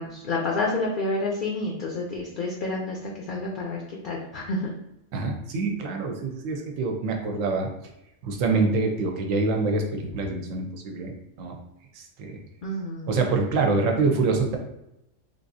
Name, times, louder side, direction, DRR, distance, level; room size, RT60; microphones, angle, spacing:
voice 1, 0.0-4.7 12.6-13.2, left 2 dB, 60° left, -2 dB, 0.5 m, -29 dB
voice 2, 5.1-7.7 8.2-11.1 11.4-11.6 12.0-12.4 13.1-14.6, right 3 dB, 85° right, 2 dB, 1.0 m, -25 dB
3.5 x 2.5 x 2.6 m, 0.86 s
omnidirectional pair, 1.3 m